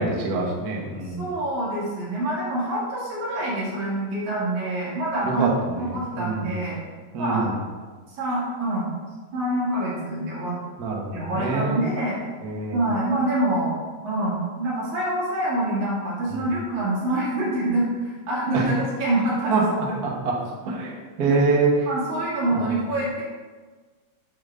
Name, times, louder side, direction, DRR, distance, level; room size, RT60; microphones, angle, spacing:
voice 1, 0.0-1.3 5.2-5.5 5.8-6.6 7.1-7.6 10.8-11.9 12.4-12.8 16.3-16.4 18.5-18.7 19.5-20.3 20.7-20.9 21.2-21.7 22.5-22.6, right 3 dB, 50° right, -1 dB, 1.2 m, -25 dB
voice 2, 1.1-6.8 7.2-7.5 8.2-8.9 9.3-10.6 11.1-12.2 12.7-13.7 14.0-20.0 21.3-21.4 21.9-23.2, right 1 dB, 80° right, -7 dB, 4.2 m, -26 dB
8.6 x 3.9 x 6.7 m, 1.4 s
omnidirectional pair, 3.3 m